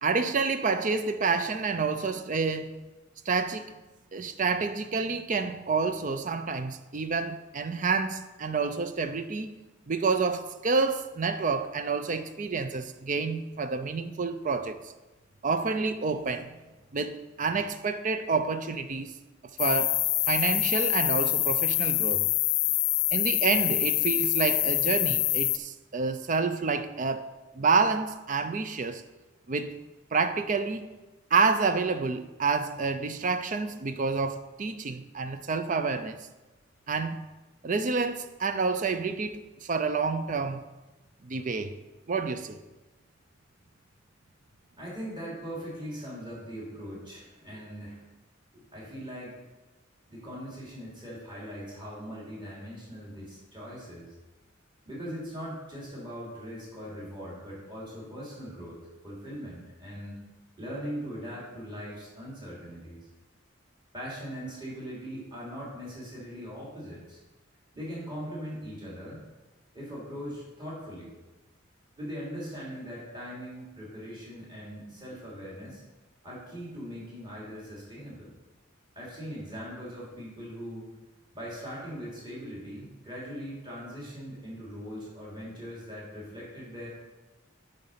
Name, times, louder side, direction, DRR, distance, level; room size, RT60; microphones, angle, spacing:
voice 1, 0.0-2.8 3.3-3.7 4.1-9.5 9.9-14.8 15.4-16.6 16.9-19.1 19.6-20.0 20.3-22.2 23.1-27.3 27.6-29.0 29.5-29.8 30.1-30.9 31.3-36.2 36.9-37.2 37.6-40.6 41.2-41.7 42.1-42.6, right 4 dB, 40° right, 0.5 m, -28 dB
sound 1, 19.6-25.6, left 18 dB, 65° left, 0.4 m, -25 dB
voice 2, 44.8-48.0 48.5-49.4 50.1-54.1 54.8-60.2 60.6-63.0 63.9-67.2 67.7-69.2 69.7-71.1 72.0-75.8 76.2-78.3 78.9-80.9 81.3-86.9, equal, 25° right, 3.3 m, -40 dB
8.9 x 5.3 x 5.7 m
head